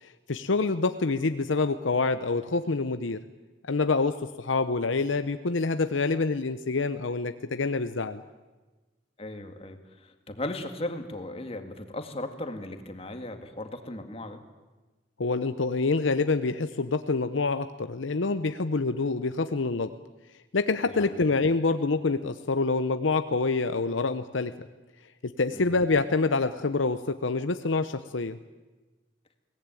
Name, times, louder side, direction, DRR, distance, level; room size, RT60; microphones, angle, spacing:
voice 1, 0.0-3.2 3.7-8.2 15.2-19.9 20.5-24.5 25.2-28.4, left 3 dB, 85° left, 10 dB, 0.8 m, -26 dB
voice 2, 9.2-14.4 21.0-21.2 25.5-25.8, left 1 dB, 30° left, 6 dB, 2.0 m, -37 dB
23.0 x 18.0 x 9.1 m, 1.2 s
head